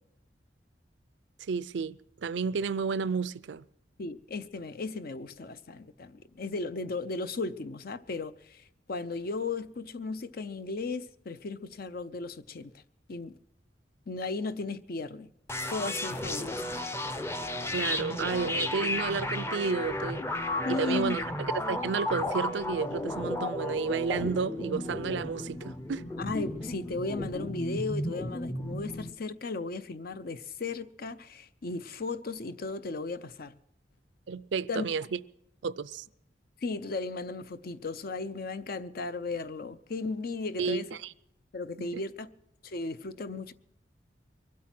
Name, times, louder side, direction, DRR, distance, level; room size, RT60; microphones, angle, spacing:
voice 1, 1.5-2.0 2.2-3.6 17.7-20.2 20.7-21.2 21.5-26.0 34.3-35.2 35.6-36.0 40.6-41.1 41.8-42.0, right 5 dB, 80° right, 0.5 m, -31 dB
voice 2, 4.0-12.7 13.1-13.4 14.1-15.3 15.7-16.6 20.6-21.1 26.2-33.6 34.7-34.9 36.6-40.9 41.5-42.3 42.6-43.5, left 3 dB, 55° left, 0.6 m, -35 dB
sound 1, 15.5-29.1, left 1 dB, 15° left, 0.6 m, -34 dB
23.5 x 8.6 x 6.0 m
head